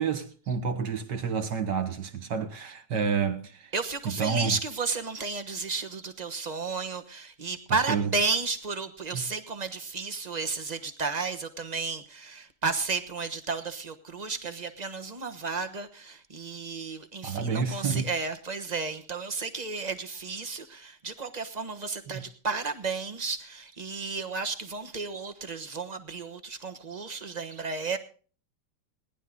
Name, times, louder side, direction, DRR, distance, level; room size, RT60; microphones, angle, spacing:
voice 1, 0.0-3.7 4.1-4.6 7.7-8.1 9.1-9.2 17.2-18.1 22.1-22.2, right 6 dB, 55° right, 1.9 m, -29 dB
voice 2, 3.7-28.0, right 4 dB, 30° right, 0.8 m, -33 dB
19.5 x 11.0 x 3.8 m
omnidirectional pair, 2.4 m